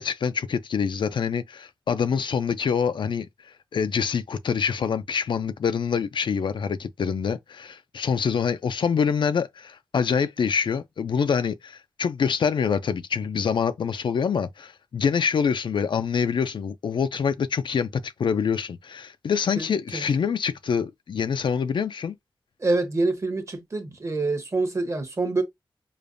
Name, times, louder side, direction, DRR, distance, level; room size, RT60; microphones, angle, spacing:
voice 1, 0.0-22.1, left 6 dB, 65° left, 0.4 m, -25 dB
voice 2, 22.6-25.4, right 3 dB, 35° right, 0.8 m, -26 dB
5.0 x 2.2 x 2.5 m
wide cardioid pair, 150°, 9 cm